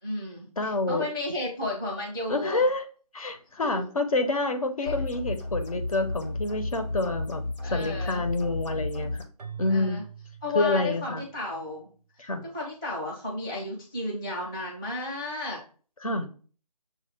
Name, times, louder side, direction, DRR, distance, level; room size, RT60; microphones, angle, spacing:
voice 1, 0.0-2.6 3.6-3.8 4.8-4.9 7.6-8.2 9.7-10.0 10.4-11.9 12.5-15.6, left 2 dB, 5° left, -8 dB, 0.6 m, -33 dB
voice 2, 0.6-1.1 2.3-2.8 3.1-9.2 9.6-10.0 10.5-11.2 12.2-12.4 16.0-16.3, left 2 dB, 60° left, 7 dB, 0.8 m, -28 dB
sound 1, 4.9-9.2, left 2 dB, 90° left, 1.1 m, -33 dB
Keyboard (musical), 9.4-11.6, right 8 dB, 80° right, 0.5 m, -44 dB
6.7 x 2.4 x 3.3 m, 0.40 s
figure-of-eight pair, 165°, 21 cm